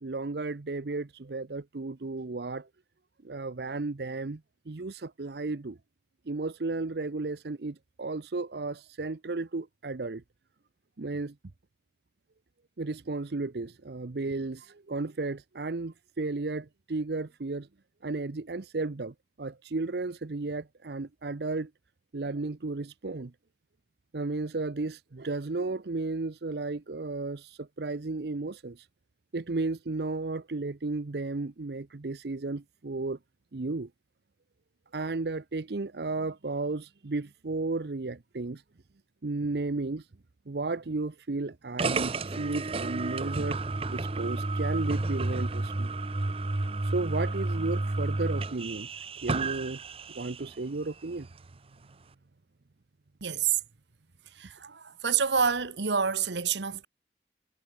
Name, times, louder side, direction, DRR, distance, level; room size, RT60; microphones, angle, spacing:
voice 1, 0.0-2.7 3.2-4.4 4.7-5.8 6.3-10.2 11.0-11.3 12.8-17.7 18.0-21.7 22.1-23.3 24.1-28.9 29.3-33.2 33.5-33.9 34.9-38.6 39.2-40.1 40.5-43.6 43.9-45.9 46.8-48.9 49.2-49.8 50.1-51.3, right 3 dB, 65° right, 0.7 m, -34 dB
sound 1, 41.8-50.5, right 2 dB, 35° right, 0.8 m, -31 dB
voice 2, 53.2-53.6 54.3-56.9, right 6 dB, 85° right, 1.2 m, -28 dB
head